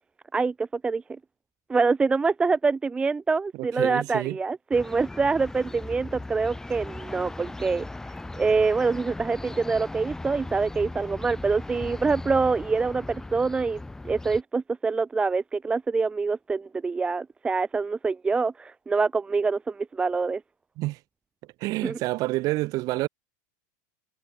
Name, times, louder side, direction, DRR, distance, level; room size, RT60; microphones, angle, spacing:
voice 1, 0.3-1.0 1.7-7.8 8.4-20.4 21.8-22.0, right 4 dB, 10° right, 0.9 m, -25 dB
voice 2, 3.6-4.4 20.8-21.0 21.6-23.1, right 20 dB, 40° right, 6.0 m, -28 dB
sound 1, 4.7-14.4, left 2 dB, 5° left, 7.4 m, -38 dB
supercardioid pair, 160°, 10 cm